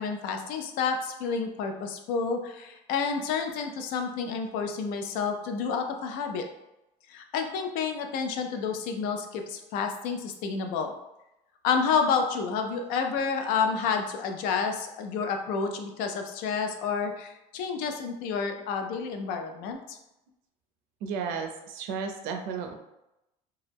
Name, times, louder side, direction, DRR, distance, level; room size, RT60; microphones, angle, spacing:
voice 1, 0.0-6.4 7.1-10.9 11.6-20.0, left 5 dB, 80° left, 5 dB, 0.4 m, -29 dB
voice 2, 21.0-22.7, right 6 dB, 80° right, 5 dB, 0.4 m, -33 dB
2.2 x 2.0 x 3.3 m, 0.90 s
cardioid pair, 165°, 15 cm